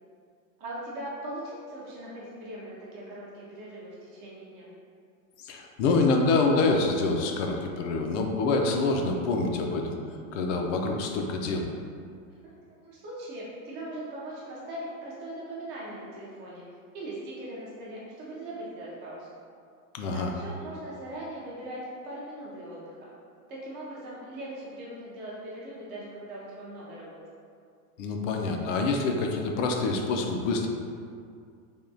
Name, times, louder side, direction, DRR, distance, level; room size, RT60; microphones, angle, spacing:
voice 1, 0.6-4.7 12.4-12.5 12.8-16.6 16.9-19.4 20.1-23.1 23.5-27.2, right 1 dB, 25° right, -6 dB, 0.3 m, -40 dB
voice 2, 5.4-10.0 10.3-11.7 19.9-20.3 28.0-30.7, left 3 dB, 60° left, 2 dB, 0.5 m, -26 dB
3.5 x 2.2 x 2.6 m, 2.3 s
supercardioid pair, 135°, 42 cm